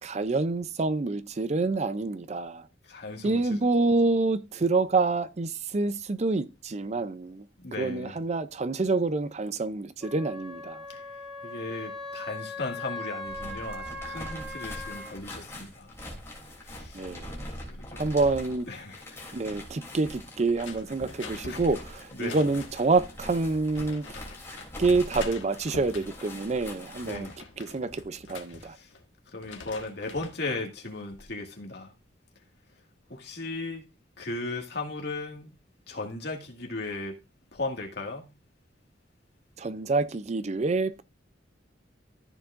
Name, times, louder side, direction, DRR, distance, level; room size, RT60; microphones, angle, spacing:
voice 1, 0.0-2.7 3.2-7.5 7.7-10.9 16.9-17.4 18.0-18.7 19.3-24.2 24.8-28.8 39.6-41.0, right 3 dB, 35° right, 0.5 m, -27 dB
voice 2, 2.9-3.6 7.6-8.2 10.9-11.0 11.4-15.9 16.6-17.0 17.7-18.0 18.7-19.2 21.4-21.6 22.1-22.4 27.0-27.3 28.8-28.9 29.3-31.9 33.1-33.9 34.2-35.5 35.9-37.2 37.5-38.3, left 2 dB, 60° left, 2.0 m, -36 dB
Wind instrument woodwind instrument, 10.0-15.1, left 2 dB, ahead, 4.6 m, -39 dB
sound 1, 13.2-27.4, left 1 dB, 15° left, 3.1 m, -43 dB
sound 2, 20.5-23.0 23.8-24.7 25.1-26.4 26.8-29.0 29.3-30.4 30.9-31.3, left 4 dB, 85° left, 1.5 m, -45 dB
14.0 x 7.2 x 2.6 m
head